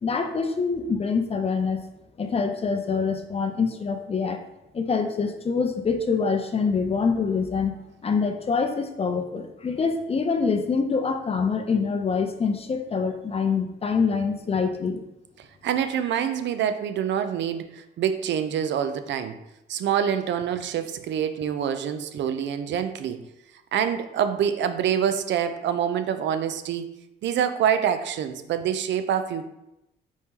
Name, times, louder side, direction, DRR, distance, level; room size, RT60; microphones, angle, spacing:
voice 1, 0.0-1.8 2.2-4.4 4.7-7.7 8.0-15.0, left 5 dB, 30° left, 6 dB, 0.5 m, -25 dB
voice 2, 15.4-19.4 19.7-23.2 23.7-26.9 27.2-29.5, right 9 dB, 65° right, 9 dB, 0.5 m, -26 dB
4.4 x 3.5 x 2.9 m, 0.88 s
cardioid pair, 90°, 20 cm